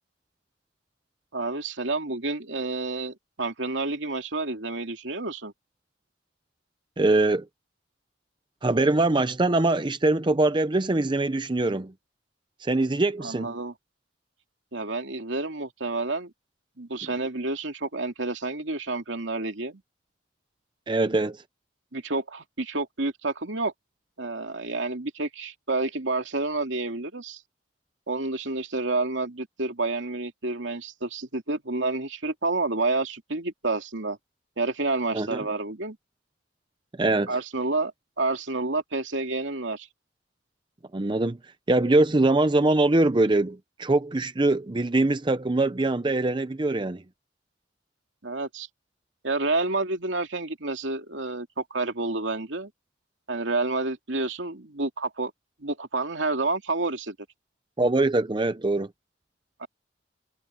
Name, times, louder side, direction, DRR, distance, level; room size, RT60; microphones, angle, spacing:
voice 1, 1.3-5.5 13.2-13.7 14.7-16.3 16.8-19.8 21.9-23.7 24.2-27.4 28.1-34.2 34.6-36.0 37.3-37.9 38.2-39.9 48.2-48.7 49.2-52.7 53.3-55.3 55.6-57.2 59.6-59.7, right 3 dB, 85° right, 2.5 m, -29 dB
voice 2, 7.0-7.4 8.6-11.9 12.6-13.5 20.9-21.4 35.1-35.4 37.0-37.4 40.9-41.4 41.7-47.0 57.8-58.9, right 2 dB, 25° right, 0.6 m, -23 dB
head